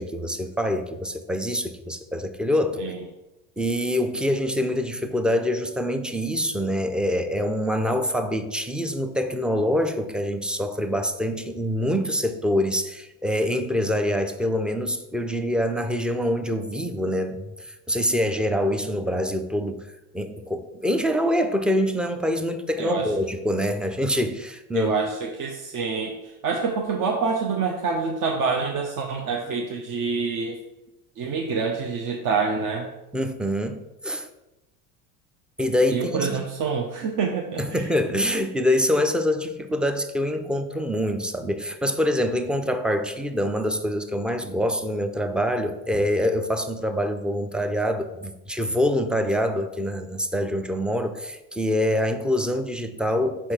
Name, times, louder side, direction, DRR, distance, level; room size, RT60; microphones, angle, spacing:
voice 1, 0.0-2.8 3.6-19.9 20.1-24.9 33.1-34.3 35.6-36.4 37.6-53.5, equal, ahead, 8 dB, 0.4 m, -25 dB
voice 2, 22.8-23.1 24.7-30.6 31.2-32.9 35.9-37.9, right 5 dB, 50° right, 2 dB, 0.8 m, -26 dB
4.4 x 4.3 x 4.9 m, 0.98 s
hypercardioid pair, 85°, 42 cm